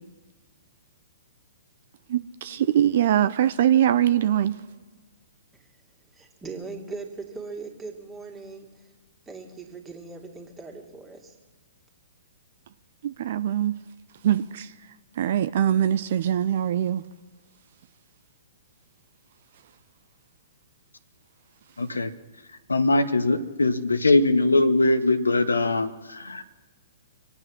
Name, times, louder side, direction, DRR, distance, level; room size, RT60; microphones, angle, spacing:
voice 1, 2.1-4.7 13.0-13.7 14.2-17.0 19.6-19.7 21.7-21.8, right 10 dB, 45° right, 0.6 m, -23 dB
voice 2, 6.4-8.8 9.3-11.3, right 4 dB, 15° right, 2.5 m, -39 dB
voice 3, 21.8-22.1 22.7-26.4, left 2 dB, 75° left, 1.0 m, -21 dB
26.0 x 8.7 x 6.1 m
figure-of-eight pair, 115°, 0 cm